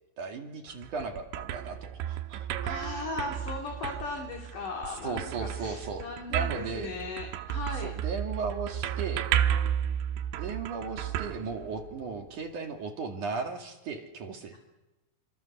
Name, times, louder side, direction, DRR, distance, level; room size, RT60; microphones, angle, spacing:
voice 1, 0.2-2.5 4.9-7.0 7.7-9.3 10.3-14.6, right 4 dB, 50° right, 2 dB, 3.1 m, -36 dB
sound 1, 0.7-12.2, right 10 dB, 80° right, 3.5 m, -33 dB
voice 2, 2.6-7.9, left 3 dB, 45° left, 1 dB, 4.0 m, -37 dB
28.0 x 26.5 x 6.9 m, 1.0 s
omnidirectional pair, 5.6 m